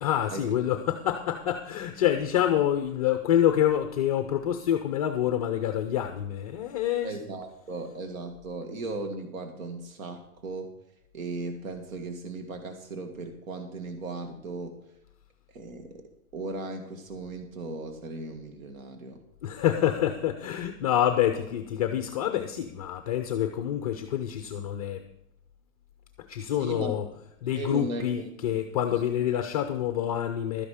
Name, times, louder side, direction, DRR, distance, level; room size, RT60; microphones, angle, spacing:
voice 1, 0.0-7.2 19.4-25.0 26.2-27.1 27.4-30.7, left 10 dB, 30° left, 8 dB, 0.5 m, -27 dB
voice 2, 7.0-10.7 11.1-14.7 15.5-16.0 16.3-19.2 26.6-26.9 27.5-28.3 28.9-29.0, right 2 dB, 75° right, 6 dB, 1.9 m, -37 dB
12.5 x 10.0 x 4.9 m, 0.82 s
supercardioid pair, 165°, 41 cm